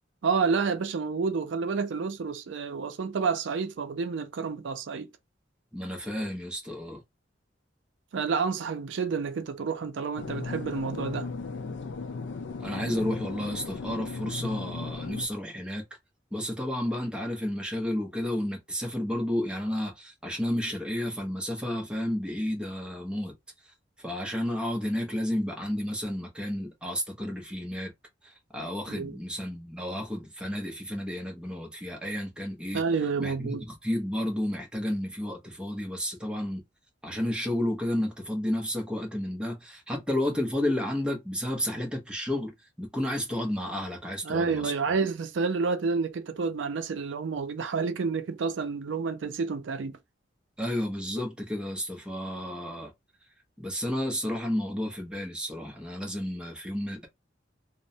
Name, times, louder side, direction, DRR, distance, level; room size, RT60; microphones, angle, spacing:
voice 1, 0.2-5.1 8.1-11.3 28.9-29.2 32.7-33.7 44.2-50.0, right 5 dB, 80° right, 0.4 m, -29 dB
voice 2, 5.7-7.0 12.6-15.8 16.3-23.3 24.0-27.9 28.2-32.8 33.2-36.6 37.0-44.7 50.6-52.9 53.6-57.1, left 1 dB, 5° right, 0.7 m, -31 dB
sound 1, 10.2-15.3, left 4 dB, 75° left, 0.4 m, -36 dB
3.1 x 2.0 x 2.7 m
head